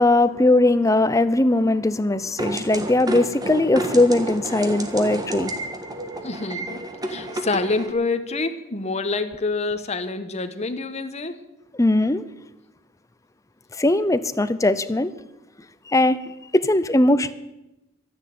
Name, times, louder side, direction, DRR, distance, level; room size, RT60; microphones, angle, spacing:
voice 1, 0.0-5.5 11.8-12.2 13.8-15.1 15.9-17.3, left 2 dB, 15° left, 0.6 m, -19 dB
sound 1, 2.4-7.9, right 1 dB, 20° right, 1.4 m, -30 dB
voice 2, 6.2-6.8 7.1-11.4, left 3 dB, 35° left, 1.2 m, -27 dB
12.5 x 10.5 x 9.4 m
head